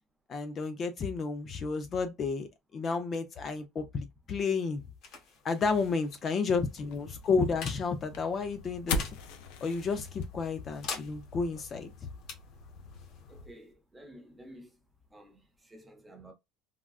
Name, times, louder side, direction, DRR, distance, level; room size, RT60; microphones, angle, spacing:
voice 1, 0.3-4.8 5.4-9.2 9.6-11.9, left 4 dB, 25° left, 0.4 m, -31 dB
sound 1, 4.2-15.6, left 5 dB, 50° left, 1.3 m, -48 dB
sound 2, 6.8-13.5, left 3 dB, 85° left, 0.5 m, -41 dB
voice 2, 13.3-14.8 15.1-16.3, right 1 dB, 10° right, 0.7 m, -52 dB
3.6 x 2.2 x 2.3 m
cardioid pair, 165°, 0 cm